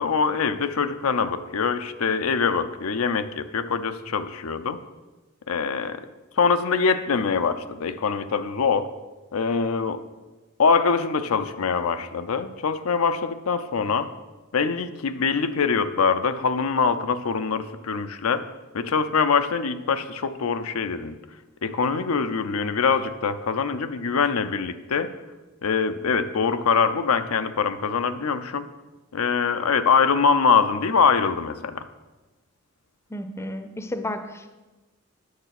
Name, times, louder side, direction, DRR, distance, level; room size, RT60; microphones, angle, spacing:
voice 1, 0.0-4.8 5.5-6.0 6.4-8.9 9.3-10.0 10.6-14.1 14.5-18.5 18.7-21.2 21.6-25.2 25.6-28.7 29.1-31.9, left 5 dB, 85° left, 9 dB, 0.6 m, -23 dB
voice 2, 33.1-34.5, left 1 dB, 15° left, 9 dB, 0.5 m, -32 dB
9.6 x 6.7 x 5.8 m, 1.1 s
head